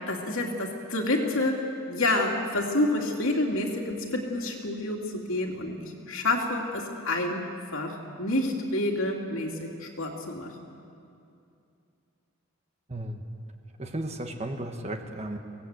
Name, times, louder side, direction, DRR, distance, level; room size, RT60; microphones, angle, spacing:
voice 1, 0.1-7.4 7.7-10.5, left 2 dB, 70° left, 1 dB, 2.8 m, -28 dB
voice 2, 12.9-13.2 13.8-15.4, right 1 dB, 30° right, 4 dB, 1.3 m, -34 dB
24.5 x 18.0 x 8.2 m, 2.6 s
head